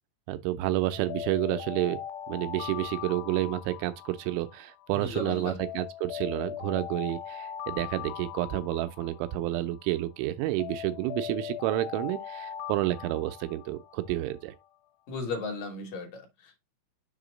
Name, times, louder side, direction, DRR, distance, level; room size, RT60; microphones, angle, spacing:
voice 1, 0.3-2.0 2.3-14.6, right 15 dB, 90° right, 3.2 m, -30 dB
Alarm, 0.9-5.1 5.6-10.1 10.6-14.4, left 11 dB, 85° left, 3.2 m, -40 dB
voice 2, 4.9-5.6 15.1-16.6, left 3 dB, 60° left, 2.7 m, -36 dB
7.2 x 2.9 x 5.2 m
omnidirectional pair, 5.4 m